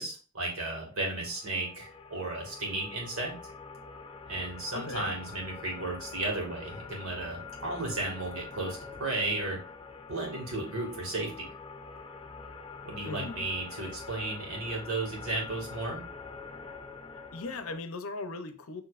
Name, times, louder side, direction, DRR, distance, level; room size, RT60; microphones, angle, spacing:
voice 1, 0.0-3.3 4.3-9.6 10.1-11.5 12.8-16.0, right 2 dB, 70° right, -1 dB, 1.9 m, -34 dB
sound 1, 1.1-17.8, left 4 dB, 25° left, 0.4 m, -45 dB
voice 2, 4.7-5.1 13.0-13.4 17.3-18.8, left 3 dB, 65° left, 9 dB, 0.6 m, -38 dB
6.8 x 3.1 x 2.4 m, 0.38 s
head